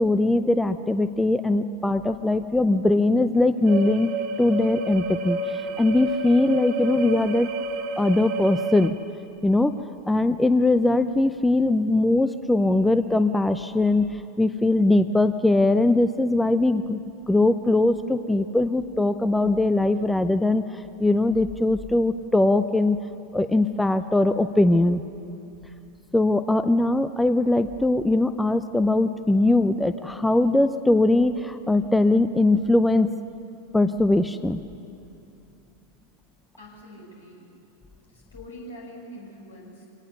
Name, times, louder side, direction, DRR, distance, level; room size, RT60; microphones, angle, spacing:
voice 1, 0.0-4.1 4.4-7.5 8.0-9.0 9.4-9.8 10.1-23.0 23.3-25.0 26.1-33.1 33.7-34.6, left 2 dB, 5° left, 11 dB, 0.5 m, -21 dB
sound 1, 3.7-8.9, right 2 dB, 40° right, 1.6 m, -30 dB
voice 2, 36.6-37.4 38.1-39.9, equal, 75° left, -2 dB, 6.0 m, -43 dB
25.0 x 18.0 x 6.9 m, 2.6 s
figure-of-eight pair, 90°, 0 cm